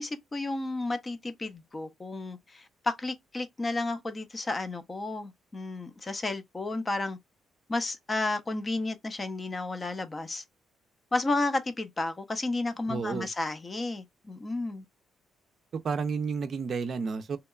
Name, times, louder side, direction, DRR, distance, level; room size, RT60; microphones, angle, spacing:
voice 1, 0.0-7.2 7.7-10.4 11.1-14.8, left 2 dB, 25° left, 0.5 m, -32 dB
voice 2, 12.9-13.3 15.7-17.4, right 5 dB, 50° right, 0.4 m, -31 dB
2.8 x 2.1 x 2.3 m
cardioid pair, 90°, 0 cm